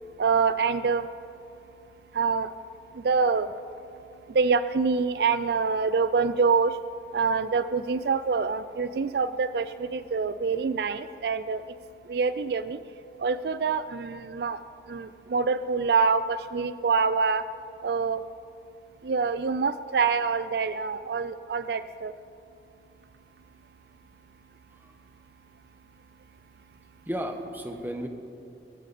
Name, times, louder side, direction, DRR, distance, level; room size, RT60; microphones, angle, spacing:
voice 1, 0.2-1.1 2.1-2.5 2.9-3.5 4.3-6.8 7.1-11.6 12.1-12.8 13.2-14.6 14.9-17.4 17.8-18.2 19.0-22.1, right 5 dB, 65° right, 13 dB, 0.4 m, -26 dB
voice 2, 27.1-28.1, equal, 10° right, 5 dB, 1.1 m, -34 dB
22.0 x 14.5 x 4.2 m, 2.7 s
head